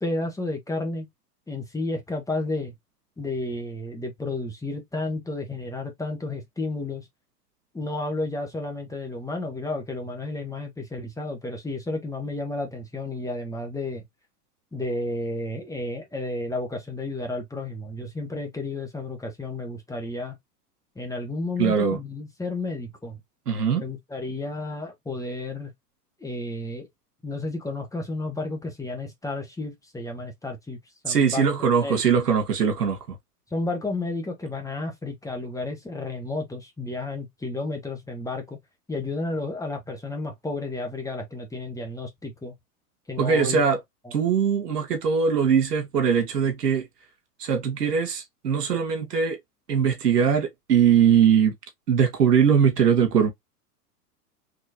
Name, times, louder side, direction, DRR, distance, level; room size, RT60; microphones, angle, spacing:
voice 1, 0.0-1.1 1.5-2.7 3.2-7.1 7.7-14.0 14.7-20.3 20.9-23.2 23.7-25.7 26.2-26.9 27.2-30.8 31.0-31.5 31.8-32.0 33.5-38.6 38.9-42.5 43.1-43.8, left 2 dB, 5° left, 1.3 m, -32 dB
voice 2, 21.6-22.0 23.5-23.8 31.1-33.0 43.2-43.8 44.1-46.9 47.4-49.4 49.7-51.5 51.9-53.3, right 7 dB, 75° right, 1.7 m, -21 dB
4.6 x 3.1 x 2.8 m
hypercardioid pair, 100°, 47 cm